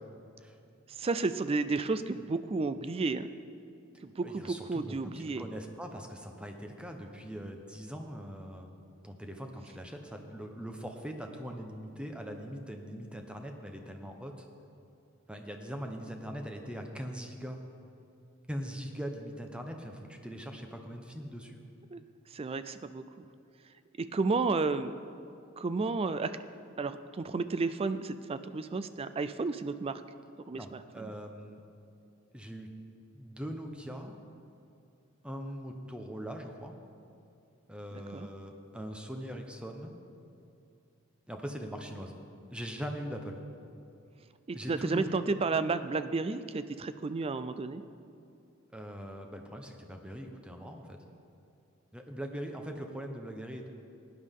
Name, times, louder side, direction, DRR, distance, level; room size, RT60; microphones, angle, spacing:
voice 1, 0.9-3.3 4.0-5.5 21.9-22.0 22.3-23.2 24.0-24.9 25.6-26.4 26.8-30.0 30.5-31.1 37.9-38.3 44.5-47.8, right 3 dB, 30° right, 12 dB, 0.4 m, -32 dB
voice 2, 4.2-8.7 9.0-14.5 15.3-17.6 18.5-21.6 30.5-31.6 32.3-32.7 33.1-34.1 35.2-36.8 37.7-39.9 41.3-42.2 42.5-43.4 44.5-45.2 48.7-51.0 51.9-53.7, equal, 5° right, 3 dB, 0.9 m, -41 dB
17.0 x 10.0 x 3.7 m, 2.6 s
head